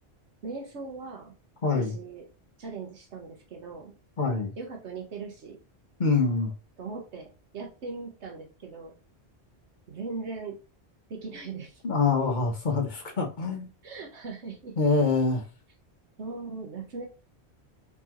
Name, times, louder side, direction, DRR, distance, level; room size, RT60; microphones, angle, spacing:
voice 1, 0.4-1.3 1.7-2.2 2.6-3.9 4.6-5.6 6.4-6.5 6.8-7.3 7.5-8.9 9.9-10.6 11.1-11.8 13.8-14.7 16.2-17.1, right 4 dB, 80° right, 2 dB, 1.3 m, -39 dB
voice 2, 1.6-2.0 4.2-4.6 6.0-6.5 11.8-13.7 14.8-15.4, left 4 dB, 45° left, 2 dB, 1.0 m, -25 dB
4.4 x 4.1 x 2.9 m, 0.32 s
omnidirectional pair, 1.2 m